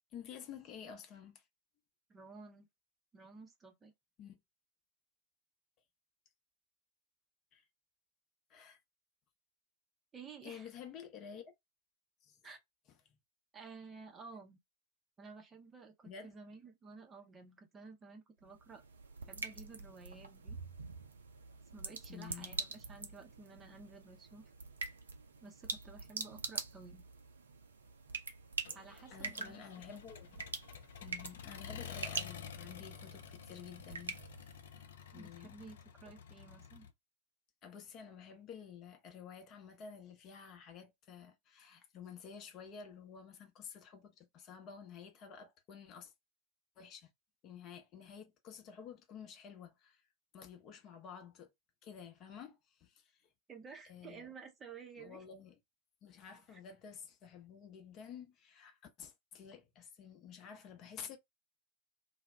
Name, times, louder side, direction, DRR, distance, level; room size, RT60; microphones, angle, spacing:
voice 1, 0.1-1.4 4.2-4.4 7.5-7.6 8.5-8.8 10.4-11.5 12.2-12.6 16.0-16.3 22.1-22.6 29.1-30.5 31.0-34.2 34.7-34.8 35.1-35.5 37.6-46.1 46.8-47.1 47.4-50.0 50.3-51.5 51.8-53.1 53.9-54.3 55.0-55.6 56.0-61.2, left 7 dB, 35° left, 0.7 m, -51 dB
voice 2, 2.1-2.7 3.1-3.9 10.1-10.7 12.4-12.6 13.5-14.6 15.2-18.8 19.3-20.6 21.7-24.5 25.4-27.1 28.7-29.6 35.1-36.9 53.5-55.2 56.5-56.6, right 4 dB, 20° right, 0.6 m, -53 dB
sound 1, 18.4-34.9, right 4 dB, 70° right, 0.4 m, -45 dB
Accelerating revving vroom, 28.6-36.9, left 8 dB, 60° left, 0.4 m, -51 dB
2.2 x 2.0 x 3.3 m
figure-of-eight pair, 90°, 0 cm